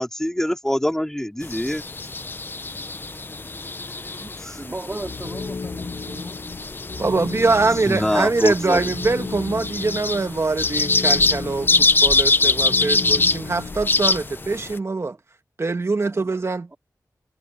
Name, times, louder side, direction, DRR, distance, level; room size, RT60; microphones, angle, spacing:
voice 1, 0.0-1.8 4.4-4.6 7.9-8.9, equal, 5° left, 4.1 m, -24 dB
sound 1, 1.4-14.8, left 3 dB, 30° left, 0.6 m, -24 dB
voice 2, 4.6-6.4 15.0-15.2 16.1-16.2 16.7-16.8, right 2 dB, 25° right, 3.7 m, -36 dB
sound 2, 5.0-14.2, left 4 dB, 60° left, 1.7 m, -35 dB
voice 3, 7.0-15.2 15.6-16.7, right 3 dB, 40° right, 1.9 m, -23 dB
wide cardioid pair, 115°, 7 cm